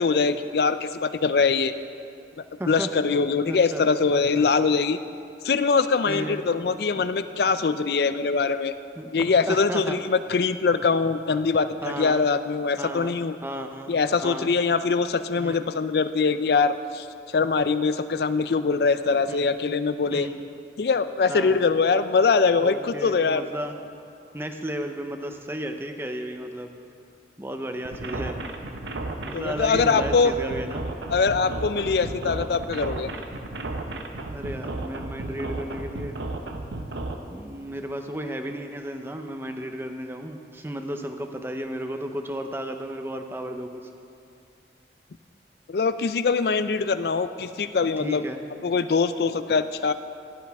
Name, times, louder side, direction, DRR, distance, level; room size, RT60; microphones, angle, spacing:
voice 1, 0.0-1.7 2.4-5.0 5.4-8.7 9.1-13.3 13.9-17.1 17.3-20.3 20.8-23.5 29.3-30.3 31.1-33.1 45.7-48.2 48.6-49.9, left 4 dB, 60° left, 12 dB, 0.4 m, -23 dB
voice 2, 3.5-3.8 4.1-4.5 6.1-6.6 7.0-7.1 9.0-9.1 9.5-10.0 11.8-12.2 12.8-13.9 14.2-14.5 15.4-15.7 19.3-19.6 20.1-20.4 21.3-21.6 22.6-23.8 24.3-26.7 27.4-28.4 29.3-30.8 34.3-36.2 37.3-43.9 48.0-48.4, right 1 dB, 15° right, 5 dB, 0.6 m, -34 dB
sound 1, 27.8-37.1, right 2 dB, 75° right, 0.8 m, -33 dB
15.5 x 11.0 x 3.5 m, 2.5 s
head